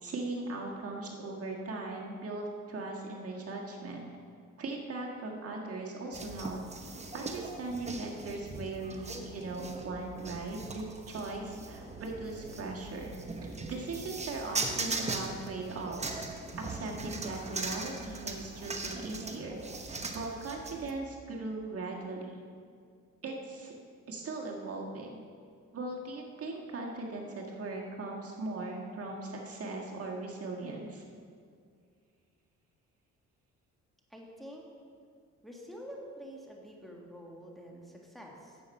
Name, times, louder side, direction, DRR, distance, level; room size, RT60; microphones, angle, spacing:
voice 1, 0.0-4.1 4.6-6.6 7.1-13.1 13.4-16.2 16.7-19.6 19.9-22.4 23.2-23.8 24.1-25.2 25.7-31.0, right 2 dB, 50° right, -1 dB, 1.7 m, -39 dB
sound 1, 6.1-20.9, right 3 dB, 20° right, 1.0 m, -40 dB
voice 2, 34.1-34.6 35.4-38.6, equal, ahead, -1 dB, 1.7 m, -47 dB
10.0 x 7.5 x 5.4 m, 2.2 s
cardioid pair, 90°, 30 cm